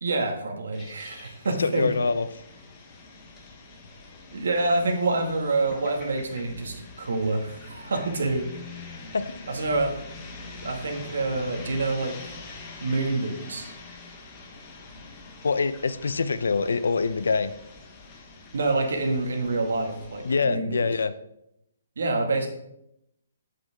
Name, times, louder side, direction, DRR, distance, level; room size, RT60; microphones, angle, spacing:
voice 1, 0.0-1.9 4.3-8.5 9.5-10.0 10.6-12.3 12.8-13.7 18.5-20.8 22.0-22.5, right 2 dB, 70° right, 3 dB, 2.0 m, -27 dB
sound 1, 0.7-20.3, left 3 dB, 15° left, 1.1 m, -45 dB
voice 2, 1.6-2.3 9.1-9.4 15.4-17.5 20.2-21.1, left 4 dB, 85° left, 13 dB, 0.7 m, -25 dB
8.3 x 7.7 x 3.7 m, 0.80 s
hypercardioid pair, 170°, 0 cm